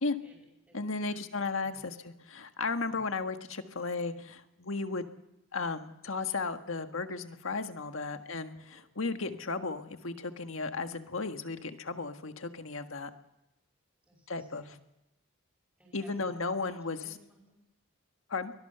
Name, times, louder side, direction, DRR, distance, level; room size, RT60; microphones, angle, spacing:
voice 1, 0.2-1.8 2.7-3.0 3.8-3.9 8.1-8.3 8.5-9.0 14.1-14.8 15.8-17.6, equal, 5° right, -4 dB, 5.7 m, -61 dB
voice 2, 0.7-5.0 5.5-13.1 14.3-14.7 15.9-17.0 18.3-18.5, left 3 dB, 75° left, 7 dB, 1.6 m, -35 dB
23.0 x 18.5 x 6.8 m, 0.92 s
head